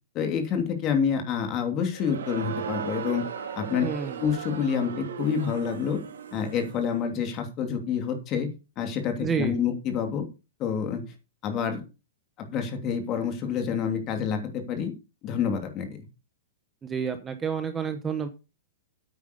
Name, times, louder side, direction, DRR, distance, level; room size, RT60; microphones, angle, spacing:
voice 1, 0.1-3.2 3.6-3.8 4.2-6.0 6.3-8.5 8.8-10.2 10.6-11.0 11.4-11.8 12.4-14.9 15.2-16.0, left 7 dB, 30° left, 5 dB, 2.8 m, -28 dB
Crowd, 1.9-6.9, right 8 dB, 85° right, 2.8 m, -36 dB
voice 2, 3.8-4.2 9.2-9.5 16.8-18.3, right 6 dB, 15° right, 9 dB, 1.1 m, -29 dB
9.4 x 8.9 x 5.3 m, 0.29 s
hypercardioid pair, 155°, 0 cm